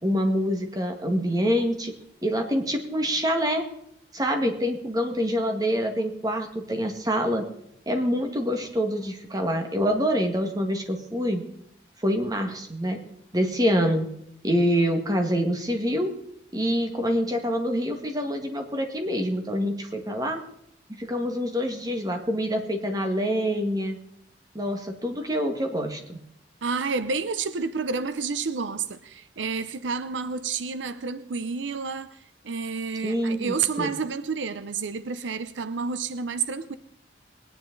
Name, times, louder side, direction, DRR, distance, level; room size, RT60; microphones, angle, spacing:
voice 1, 0.0-1.9 2.2-3.6 4.1-7.4 7.8-11.4 12.0-13.0 13.3-14.1 14.4-16.1 16.5-20.4 20.9-24.0 24.5-26.2 33.0-33.9, equal, 20° right, 1.8 m, -26 dB
voice 2, 26.6-36.7, right 5 dB, 90° right, 0.6 m, -30 dB
20.5 x 9.8 x 3.9 m
head